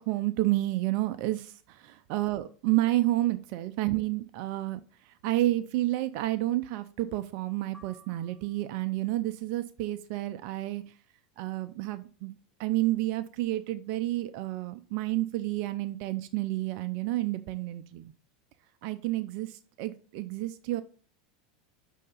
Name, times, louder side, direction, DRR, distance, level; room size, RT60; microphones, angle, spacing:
voice 1, 0.0-1.5 1.8-4.8 5.2-10.8 11.4-12.3 12.6-18.0 18.8-19.5 19.8-20.8, right 16 dB, 60° right, 10 dB, 0.4 m, -30 dB
sound 1, 7.7-9.0, right 3 dB, 15° left, 1.7 m, -57 dB
6.5 x 2.8 x 5.2 m, 0.40 s
hypercardioid pair, 100°, 3 cm